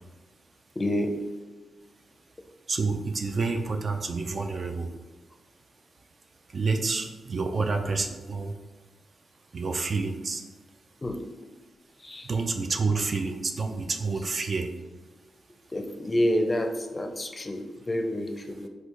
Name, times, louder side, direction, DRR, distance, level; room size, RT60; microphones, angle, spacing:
voice 1, 0.8-1.2 11.0-11.2 12.0-12.3 15.7-18.7, left 1 dB, 35° left, 4 dB, 0.4 m, -28 dB
voice 2, 2.7-4.9 6.5-8.5 9.5-10.4 12.2-14.7, right 4 dB, 50° right, 5 dB, 0.4 m, -28 dB
4.3 x 2.4 x 2.4 m, 1.3 s
supercardioid pair, 40°, 0 cm